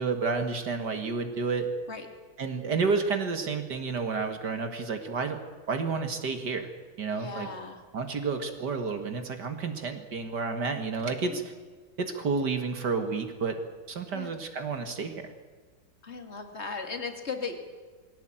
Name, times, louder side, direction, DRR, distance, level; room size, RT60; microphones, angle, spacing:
voice 1, 0.0-1.7 2.4-5.4 5.7-6.7 7.0-7.5 7.9-11.5 12.0-13.6 13.9-15.3, right 4 dB, 55° right, 7 dB, 2.3 m, -30 dB
voice 2, 7.1-7.8 11.2-11.4 14.1-14.3 16.0-17.5, left 4 dB, 35° left, 6 dB, 2.7 m, -37 dB
22.0 x 17.0 x 9.0 m, 1.5 s
omnidirectional pair, 2.2 m